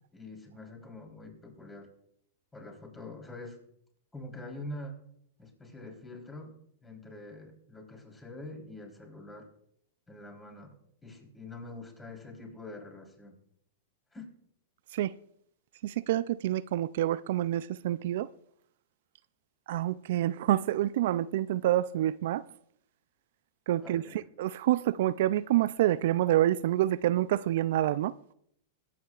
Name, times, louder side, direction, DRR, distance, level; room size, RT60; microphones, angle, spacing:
voice 1, 0.1-1.9 2.5-3.6 4.1-5.0 5.4-9.5 10.1-10.7 11.0-13.4 14.1-14.3 23.8-24.2, left 2 dB, 15° left, 3.7 m, -45 dB
voice 2, 15.8-18.3 19.7-22.4 23.7-24.0 24.4-28.1, right 13 dB, 65° right, 0.3 m, -27 dB
22.0 x 8.5 x 2.4 m
hypercardioid pair, 120°, 0 cm